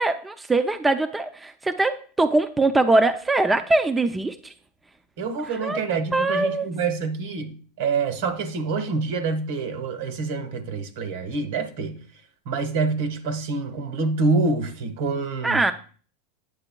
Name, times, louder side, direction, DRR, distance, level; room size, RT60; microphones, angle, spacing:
voice 1, 0.0-4.5 5.6-5.8 6.1-6.7 15.4-15.7, right 2 dB, 10° right, 0.5 m, -22 dB
voice 2, 5.2-12.0 12.4-15.6, right 4 dB, 70° right, 1.3 m, -26 dB
8.9 x 6.7 x 2.3 m
supercardioid pair, 115°, 0 cm